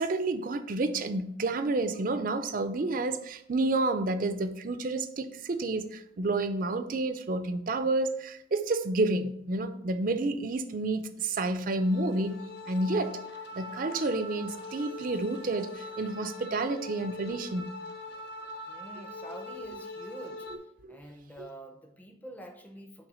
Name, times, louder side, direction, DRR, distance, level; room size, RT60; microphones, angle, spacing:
voice 1, 0.0-12.4 12.7-13.1 13.6-17.7 20.8-21.0 21.4-21.5, right 2 dB, 45° right, 0.4 m, -30 dB
sound 1, 11.7-20.6, left 2 dB, 60° left, 0.6 m, -42 dB
voice 2, 18.7-20.5 20.9-23.1, right 1 dB, 10° left, 0.6 m, -46 dB
5.7 x 3.4 x 5.5 m
head